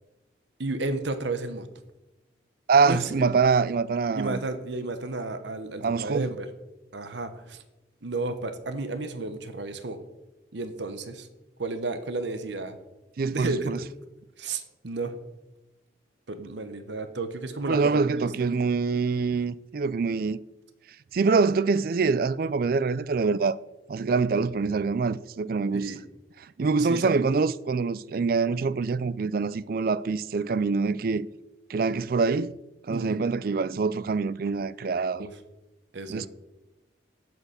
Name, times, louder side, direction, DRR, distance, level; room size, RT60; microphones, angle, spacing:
voice 1, 0.6-1.7 2.8-3.1 4.1-6.5 6.9-7.6 8.0-10.0 10.5-11.3 11.6-12.8 13.3-13.9 14.4-15.1 16.3-18.3 25.7-26.0 26.8-27.1 32.9-33.3 35.2-35.3 35.9-36.3, right 2 dB, 65° right, 1.0 m, -32 dB
voice 2, 2.7-4.4 5.8-6.3 13.2-13.8 17.7-20.4 21.1-23.6 23.9-25.9 26.6-31.3 31.7-32.5 32.9-35.3 36.1-36.3, right 4 dB, 50° right, 0.3 m, -25 dB
8.2 x 7.8 x 6.9 m
head